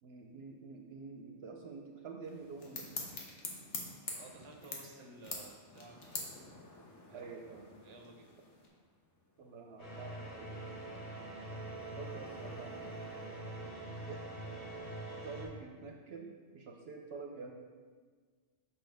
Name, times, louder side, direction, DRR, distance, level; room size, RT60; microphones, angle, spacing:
voice 1, 0.0-3.0 7.1-7.7 9.4-10.5 12.0-13.1 14.0-14.2 15.2-17.5, right 4 dB, 65° right, 2 dB, 0.8 m, -48 dB
sound 1, 2.2-8.7, left 3 dB, 70° left, 1.3 m, -46 dB
voice 2, 4.1-6.6 7.0-7.3 7.8-8.3 13.5-13.8 14.0-14.2, right 2 dB, 30° right, 2 dB, 0.6 m, -55 dB
sound 2, 5.7-13.3, left 2 dB, 25° left, 0.4 m, -60 dB
sound 3, 9.8-15.5, right 2 dB, 85° left, 1.9 m, -44 dB
6.2 x 5.8 x 3.4 m, 1.5 s
omnidirectional pair, 1.3 m